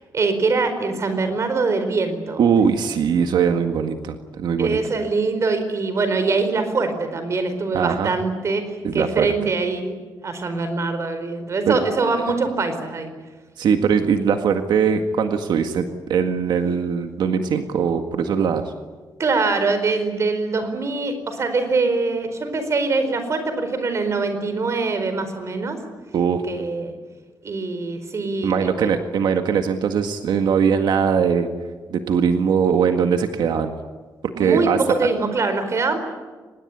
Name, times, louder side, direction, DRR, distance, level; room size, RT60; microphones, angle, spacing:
voice 1, 0.1-2.4 4.6-9.9 10.2-13.1 19.2-25.8 26.5-26.9 27.4-29.0 34.3-36.0, right 3 dB, 40° right, 9 dB, 4.5 m, -23 dB
voice 2, 2.4-4.8 7.7-8.1 8.8-9.3 11.7-11.8 13.6-18.6 26.1-26.4 28.4-31.5 31.9-33.7 34.4-34.8, right 7 dB, 85° right, 6 dB, 1.8 m, -20 dB
25.5 x 20.5 x 9.9 m, 1.4 s
wide cardioid pair, 150°, 7 cm